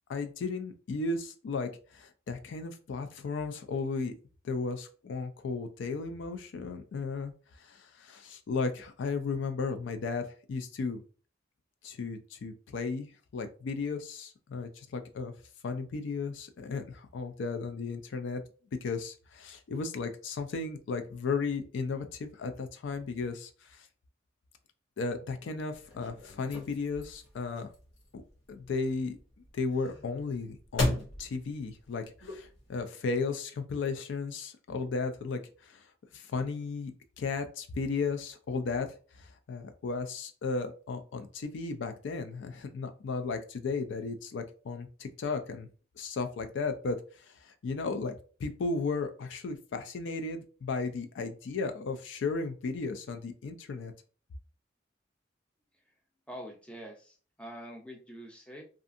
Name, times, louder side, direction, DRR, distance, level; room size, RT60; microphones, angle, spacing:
voice 1, 0.1-4.1 4.4-7.3 7.6-11.0 11.8-15.3 15.6-18.4 18.8-23.9 25.0-27.7 28.5-29.2 29.5-35.9 36.1-38.9 39.1-45.7 46.0-53.9, left 4 dB, 70° left, 8 dB, 0.4 m, -35 dB
sound 1, 25.7-32.8, left 2 dB, 85° left, 0.9 m, -38 dB
voice 2, 56.3-58.6, equal, 5° left, 1 dB, 0.5 m, -45 dB
2.6 x 2.4 x 2.5 m, 0.38 s
head